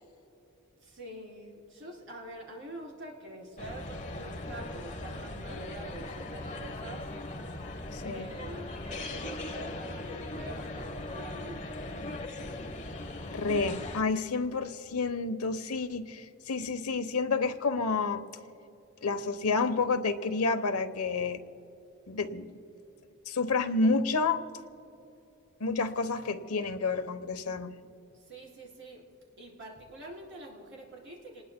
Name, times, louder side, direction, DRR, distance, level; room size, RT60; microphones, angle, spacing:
voice 1, 0.8-7.1 8.0-12.4 28.1-29.1 29.4-31.4, right 1 dB, 60° right, -1 dB, 3.5 m, -46 dB
sound 1, 3.6-14.0, left 2 dB, 35° left, 1.0 m, -39 dB
voice 2, 7.9-8.3 13.3-18.2 19.0-21.4 22.1-22.5 23.3-24.4 25.6-27.7, left 4 dB, 85° left, 10 dB, 0.9 m, -29 dB
28.0 x 20.0 x 2.2 m, 2.9 s
head